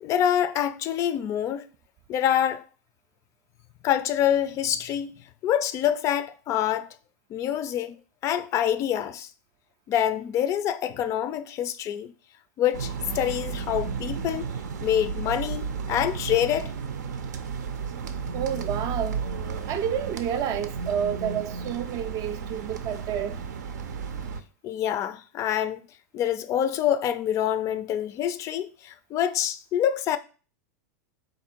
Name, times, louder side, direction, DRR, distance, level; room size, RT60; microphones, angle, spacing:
voice 1, 0.0-1.6 2.1-2.6 3.8-5.1 5.4-6.9 7.3-8.0 8.2-9.3 9.9-12.1 12.6-14.5 14.8-16.7 24.6-25.8 26.1-30.2, left 10 dB, 35° left, 0.3 m, -26 dB
sound 1, 12.7-24.4, right 5 dB, 90° right, 0.6 m, -33 dB
voice 2, 18.3-19.2 19.7-23.4, right 9 dB, 40° right, 0.4 m, -29 dB
4.0 x 2.6 x 4.4 m
hypercardioid pair, 120°, 9 cm